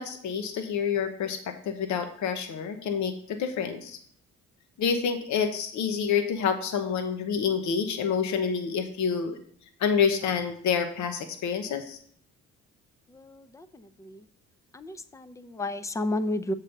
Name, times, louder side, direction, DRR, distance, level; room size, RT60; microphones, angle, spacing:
voice 1, 0.0-4.0 4.8-9.4 9.8-12.0, left 6 dB, 70° left, 7 dB, 0.9 m, -28 dB
voice 2, 13.1-14.3 14.7-16.5, left 1 dB, 10° left, 13 dB, 0.5 m, -33 dB
7.5 x 3.8 x 6.6 m, 0.62 s
cardioid pair, 90°, 30 cm